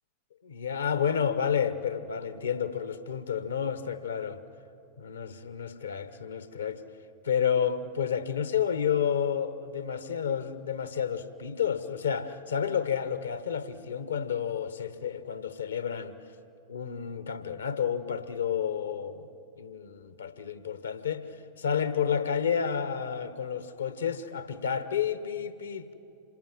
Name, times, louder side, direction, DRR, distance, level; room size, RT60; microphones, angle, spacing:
voice 1, 0.4-4.4 5.0-6.8 7.2-16.2 16.7-19.3 19.6-21.3 21.6-25.9, left 8 dB, 70° left, 1.2 m, -30 dB
27.0 x 18.0 x 9.1 m
figure-of-eight pair, 90°, 0 cm